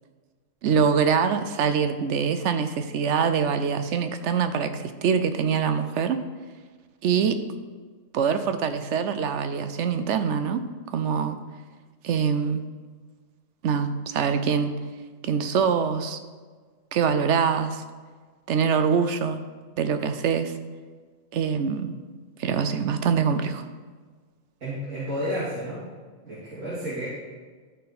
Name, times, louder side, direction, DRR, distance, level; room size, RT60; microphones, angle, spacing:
voice 1, 0.6-6.2 7.0-7.4 8.1-10.6 10.9-11.4 12.0-12.6 13.6-14.8 15.2-16.2 16.9-17.8 18.5-19.4 19.8-20.5 21.3-21.9 22.4-23.7, right 6 dB, 70° right, 9 dB, 0.9 m, -24 dB
voice 2, 24.6-25.8 26.2-27.1, equal, 85° right, -10 dB, 2.5 m, -31 dB
13.0 x 4.4 x 4.1 m, 1.5 s
omnidirectional pair, 1.3 m